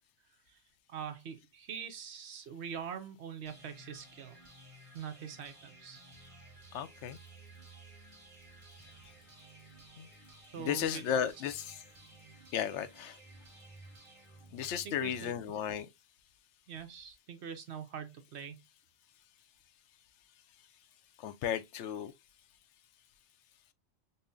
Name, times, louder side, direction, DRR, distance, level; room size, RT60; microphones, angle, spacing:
voice 1, 0.9-4.4 4.9-6.0 10.5-11.0 14.8-15.3 16.7-18.6, right 7 dB, 65° right, 0.9 m, -43 dB
sound 1, 3.5-15.4, right 2 dB, 40° right, 1.5 m, -56 dB
voice 2, 6.7-7.2 10.0-10.1 10.6-11.8 12.5-13.2 14.5-15.9 21.2-22.1, left 9 dB, 75° left, 0.8 m, -34 dB
5.3 x 2.1 x 2.5 m
omnidirectional pair, 1.3 m